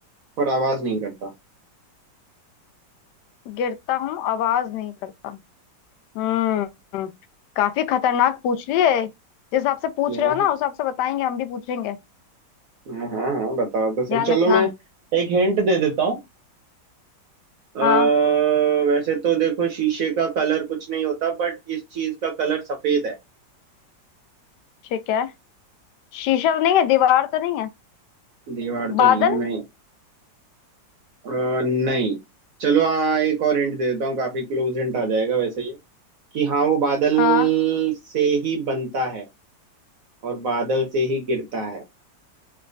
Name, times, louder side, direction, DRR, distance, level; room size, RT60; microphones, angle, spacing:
voice 1, 0.4-1.3 10.1-10.3 12.9-14.7 15.1-16.2 17.7-23.1 28.5-29.6 31.2-32.2 32.6-35.8 36.3-39.3 40.2-41.8, right 4 dB, 65° right, 0.9 m, -22 dB
voice 2, 3.5-5.4 6.1-6.7 6.9-7.1 7.6-9.1 9.5-12.0 14.1-14.7 17.8-18.1 24.9-25.3 26.1-27.7 28.9-29.4 37.2-37.5, left 10 dB, 75° left, 1.1 m, -22 dB
3.3 x 3.1 x 2.5 m
omnidirectional pair, 2.0 m